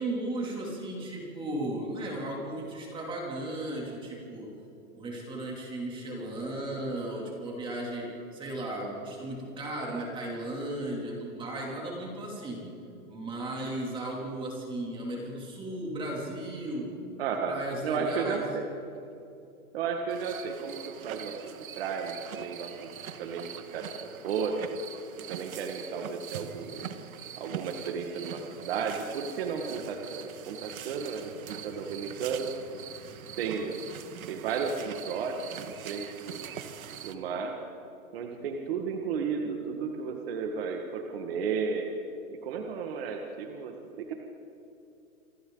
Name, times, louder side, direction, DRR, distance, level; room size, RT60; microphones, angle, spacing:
voice 1, 0.0-4.5 4.9-12.7 13.1-17.0 17.5-18.4, right 1 dB, 10° right, -2 dB, 3.0 m, -35 dB
voice 2, 17.2-17.6 17.8-18.7 19.7-22.9 23.2-24.6 25.3-26.9 27.4-32.5 33.4-33.8 34.3-36.5 37.0-37.5 38.1-41.9 42.4-44.1, right 6 dB, 40° right, 2 dB, 1.8 m, -33 dB
sound 1, 20.1-37.1, right 9 dB, 70° right, 1.7 m, -43 dB
28.0 x 23.5 x 4.0 m, 2.7 s
hypercardioid pair, 170°, 43 cm